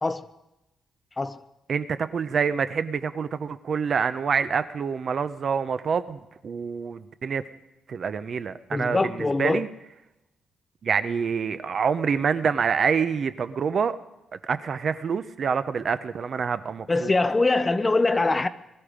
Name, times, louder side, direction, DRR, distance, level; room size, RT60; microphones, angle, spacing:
voice 1, 1.7-7.4 7.9-9.7 10.8-14.0 14.5-17.1, right 6 dB, 40° right, 0.6 m, -26 dB
voice 2, 8.7-9.7 16.9-18.5, left 3 dB, 15° left, 0.5 m, -23 dB
21.0 x 13.5 x 5.1 m
wide cardioid pair, 170°, 0 cm